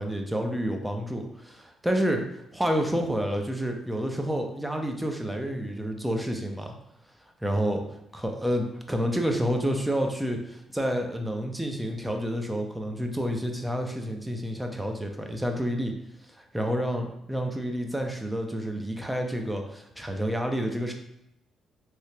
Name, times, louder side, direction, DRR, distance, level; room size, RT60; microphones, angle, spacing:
voice 1, 0.0-6.7 7.4-7.8 8.2-15.9 16.4-20.9, equal, 5° right, 3 dB, 0.5 m, -29 dB
3.2 x 2.8 x 2.8 m, 0.81 s
cardioid pair, 90°, 0 cm